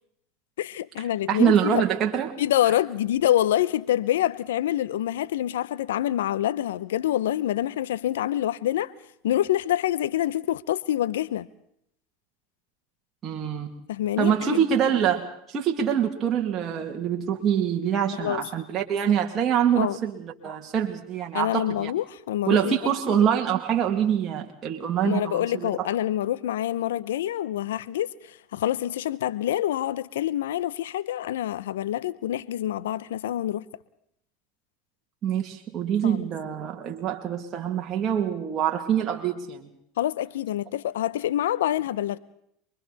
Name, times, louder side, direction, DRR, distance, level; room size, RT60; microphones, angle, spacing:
voice 1, 0.6-1.9 2.4-8.9 9.2-11.5 13.9-14.6 18.2-18.4 19.8-20.0 21.3-22.8 23.1-23.2 25.0-33.6 36.0-36.3 40.0-42.2, left 12 dB, 85° left, 0.8 m, -26 dB
voice 2, 1.3-2.3 13.2-13.7 14.2-21.9 22.5-25.9 35.2-39.7, right 9 dB, 35° right, 2.5 m, -25 dB
27.5 x 23.0 x 4.1 m
hypercardioid pair, 95°, 0 cm